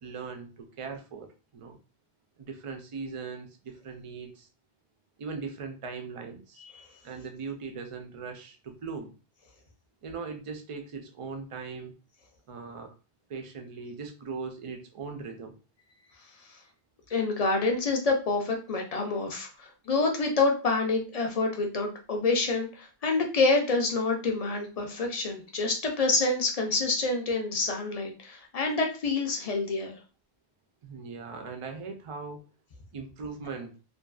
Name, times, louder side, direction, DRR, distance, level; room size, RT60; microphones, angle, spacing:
voice 1, 0.0-1.8 2.4-4.5 5.2-6.6 7.0-9.1 10.0-11.9 12.5-12.9 13.3-15.5 30.8-32.4 32.9-33.7, right 5 dB, 55° right, 4 dB, 0.3 m, -39 dB
voice 2, 17.1-30.0, left 3 dB, 50° left, 2 dB, 0.5 m, -27 dB
2.5 x 2.2 x 2.3 m, 0.34 s
omnidirectional pair, 1.1 m